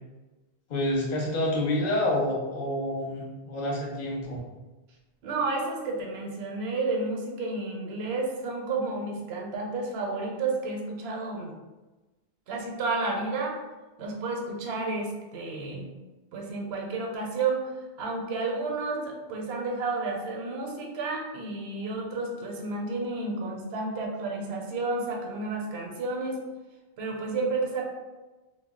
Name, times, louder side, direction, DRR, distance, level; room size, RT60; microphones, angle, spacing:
voice 1, 0.7-4.4, left 1 dB, 50° left, -2 dB, 0.7 m, -28 dB
voice 2, 5.2-11.5 12.5-13.6 14.0-15.9 16.3-17.7 18.0-26.4 27.0-27.9, right 3 dB, 75° right, 0 dB, 0.8 m, -31 dB
2.3 x 2.1 x 3.5 m, 1.2 s
omnidirectional pair, 1.1 m